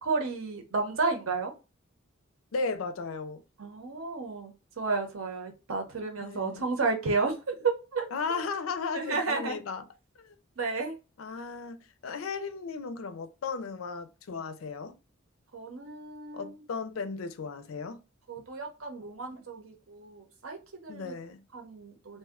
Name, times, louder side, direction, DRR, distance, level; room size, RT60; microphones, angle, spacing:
voice 1, 0.0-1.5 3.6-8.0 8.9-9.6 10.6-10.9 15.5-16.6 18.3-21.1 21.5-22.2, right 4 dB, 85° right, 0.8 m, -32 dB
voice 2, 2.5-3.4 6.2-6.7 8.1-9.9 10.2-10.4 11.2-11.8 12.0-15.0 16.3-18.0 20.9-21.4, left 4 dB, 85° left, 0.4 m, -35 dB
2.6 x 2.1 x 3.5 m
head